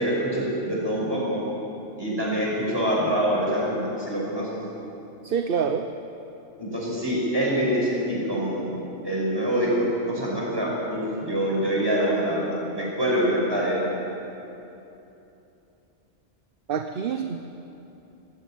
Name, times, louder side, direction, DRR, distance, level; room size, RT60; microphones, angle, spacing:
voice 1, 0.0-1.5 2.0-4.6 6.6-8.7 9.0-12.5 12.7-13.8, equal, 20° right, -5 dB, 6.1 m, -25 dB
voice 2, 5.2-5.9 16.7-17.4, right 7 dB, 55° right, 7 dB, 0.9 m, -26 dB
20.0 x 15.0 x 9.2 m, 2.9 s
omnidirectional pair, 1.2 m